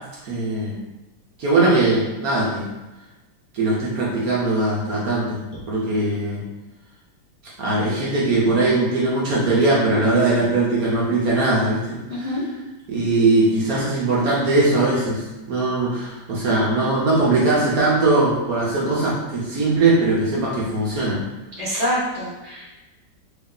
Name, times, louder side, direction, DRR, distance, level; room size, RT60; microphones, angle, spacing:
voice 1, 0.2-0.8 1.4-2.7 3.5-5.4 5.7-6.4 7.6-12.4 12.9-21.2, right 2 dB, 60° right, -6 dB, 1.0 m, -20 dB
voice 2, 12.1-12.4 21.6-22.7, equal, 40° left, -10 dB, 0.5 m, -26 dB
3.1 x 2.7 x 3.7 m, 1.1 s
omnidirectional pair, 2.1 m